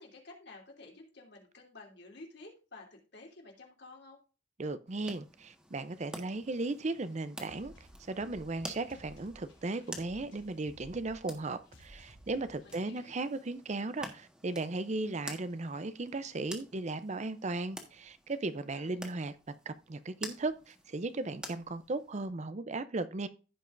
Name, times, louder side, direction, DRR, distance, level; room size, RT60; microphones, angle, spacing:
voice 1, 0.0-4.2 12.6-13.1 18.5-19.0, left 2 dB, 60° left, 2.9 m, -52 dB
voice 2, 4.6-7.7 8.1-19.3 19.7-23.3, right 2 dB, 40° right, 0.6 m, -36 dB
sound 1, 4.9-22.3, equal, 5° right, 1.5 m, -50 dB
sound 2, 7.5-13.1, equal, 90° left, 3.1 m, -57 dB
15.5 x 5.4 x 2.6 m
head